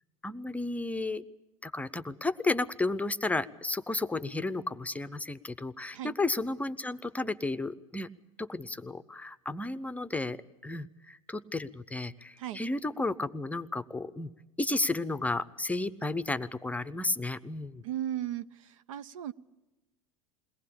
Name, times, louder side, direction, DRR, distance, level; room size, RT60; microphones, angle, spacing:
voice 1, 0.2-1.2 1.6-8.1 8.4-14.3 14.6-17.8, left 2 dB, 10° left, 14 dB, 0.7 m, -33 dB
voice 2, 17.8-19.3, right 11 dB, 70° right, 15 dB, 0.7 m, -36 dB
22.0 x 18.0 x 8.6 m, 1.1 s
hypercardioid pair, 85°, 17 cm